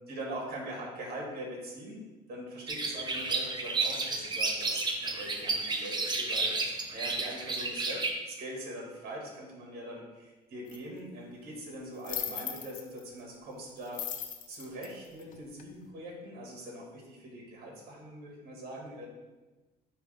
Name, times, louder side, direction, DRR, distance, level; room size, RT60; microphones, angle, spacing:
voice 1, 0.1-2.0 2.3-4.8 5.1-6.6 6.9-14.1 14.5-19.1, right 1 dB, 65° right, -1 dB, 1.9 m, -42 dB
sound 1, 2.7-8.1, right 3 dB, 25° right, 0.8 m, -32 dB
sound 2, 10.7-10.8 12.0-13.0 13.9-15.7, left 8 dB, 50° left, 0.6 m, -38 dB
9.4 x 3.3 x 3.4 m, 1.2 s
cardioid pair, 110°, 17 cm